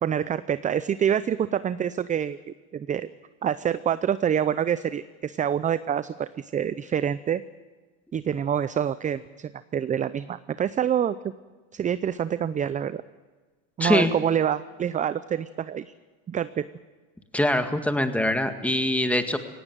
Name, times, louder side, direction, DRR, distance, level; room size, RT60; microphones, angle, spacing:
voice 1, 0.0-2.4 2.7-3.1 3.4-7.4 8.1-11.2 11.7-13.0 13.8-15.8 16.3-16.7, right 9 dB, 20° right, 15 dB, 0.6 m, -26 dB
voice 2, 13.8-14.1 17.3-19.4, left 1 dB, 5° left, 7 dB, 1.9 m, -23 dB
18.0 x 17.5 x 9.2 m, 1.3 s
supercardioid pair, 105°, 35 cm